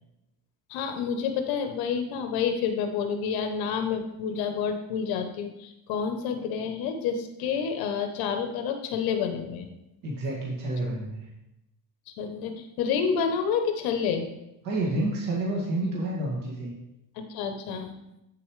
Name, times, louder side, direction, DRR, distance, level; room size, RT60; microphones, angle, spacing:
voice 1, 0.7-9.7 12.2-14.3 17.1-17.9, left 6 dB, 65° left, 6 dB, 0.9 m, -29 dB
voice 2, 10.0-11.3 14.6-16.7, right 1 dB, 55° right, -4 dB, 2.0 m, -29 dB
8.6 x 6.9 x 3.2 m, 0.88 s
cardioid pair, 150°, 40 cm